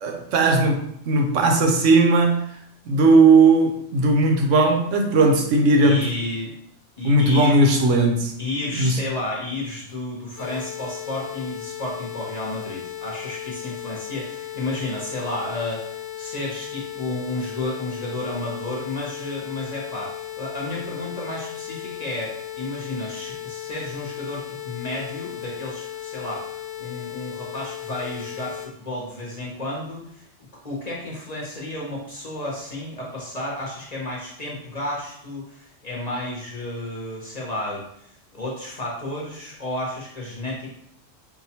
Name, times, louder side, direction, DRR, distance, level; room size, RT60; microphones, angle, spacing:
voice 1, 0.0-2.4 2.9-6.1 7.0-8.3 8.8-9.0, right 3 dB, 80° right, 2 dB, 1.0 m, -17 dB
voice 2, 5.8-6.6 7.0-7.6 8.4-30.2 30.6-40.7, left 2 dB, 40° left, -3 dB, 0.8 m, -32 dB
sound 1, 10.4-28.7, left 12 dB, 85° left, 1.0 m, -36 dB
4.7 x 2.2 x 2.8 m, 0.69 s
omnidirectional pair, 1.3 m